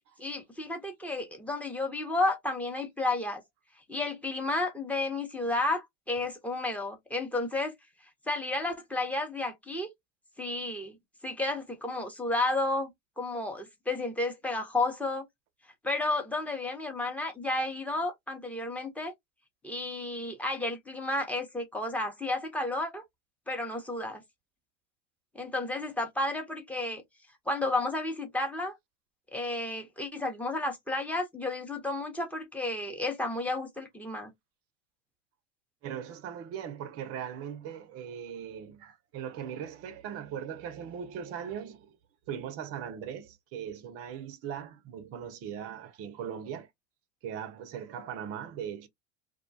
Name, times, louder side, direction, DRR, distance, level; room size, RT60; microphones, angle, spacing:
voice 1, 0.2-3.4 3.9-7.7 8.3-9.9 10.4-11.0 11.2-15.2 15.8-19.1 19.6-23.0 23.5-24.2 25.3-27.0 27.5-28.8 29.3-34.3, left 2 dB, 5° left, 0.7 m, -32 dB
voice 2, 35.8-42.0 42.3-46.7 47.2-48.9, right 8 dB, 35° right, 0.6 m, -39 dB
2.3 x 2.2 x 2.6 m
hypercardioid pair, 95°, 39 cm